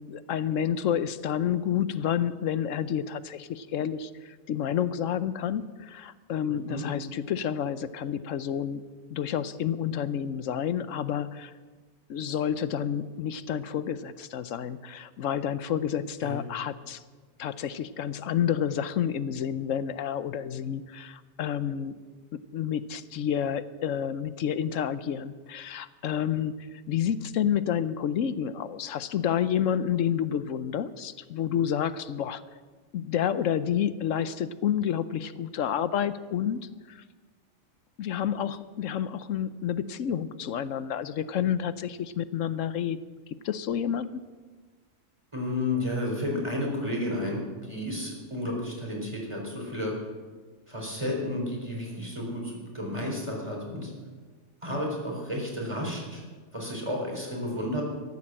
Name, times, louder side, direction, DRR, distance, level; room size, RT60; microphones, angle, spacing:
voice 1, 0.0-8.8 9.1-11.5 12.1-17.0 17.4-22.0 22.5-32.4 32.9-37.0 38.0-43.0 43.4-44.2, left 9 dB, 70° left, 14 dB, 1.0 m, -29 dB
voice 2, 45.3-47.4 47.7-49.9 50.7-53.9 54.6-56.2 56.5-57.8, left 1 dB, 20° right, -1 dB, 4.2 m, -32 dB
14.0 x 11.5 x 7.5 m, 1.4 s
omnidirectional pair, 1.4 m